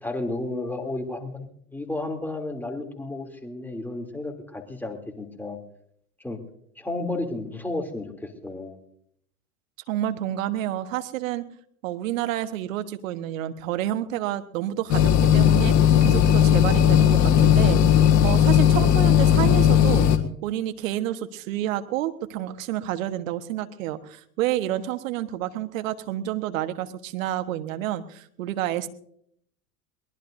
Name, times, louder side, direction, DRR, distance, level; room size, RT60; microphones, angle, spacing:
voice 1, 0.0-5.6 6.2-6.4 6.8-8.8, left 2 dB, 5° left, 2 dB, 3.0 m, -32 dB
voice 2, 9.9-11.4 11.8-20.1 20.4-28.9, right 13 dB, 65° right, 11 dB, 1.4 m, -29 dB
sound 1, 14.9-20.2, left 9 dB, 40° left, 1.7 m, -17 dB
23.0 x 19.5 x 2.7 m, 0.68 s
hypercardioid pair, 90°, 42 cm